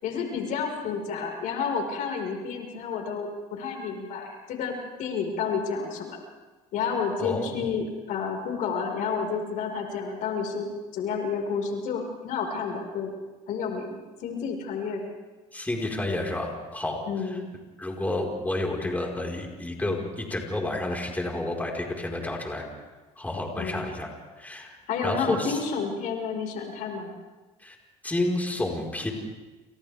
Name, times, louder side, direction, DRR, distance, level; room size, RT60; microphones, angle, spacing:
voice 1, 0.0-6.2 6.7-13.1 13.5-15.1 17.1-17.5 23.6-23.9 24.9-27.1, left 5 dB, 65° left, 2 dB, 5.3 m, -30 dB
voice 2, 7.2-7.6 15.5-17.0 17.3-17.4 17.8-22.7 23.2-24.1 24.4-24.8 25.0-25.6 27.6-27.7 28.0-29.1, left 2 dB, 10° left, -1 dB, 4.9 m, -30 dB
29.5 x 29.0 x 3.6 m, 1.2 s
supercardioid pair, 85°, 14 cm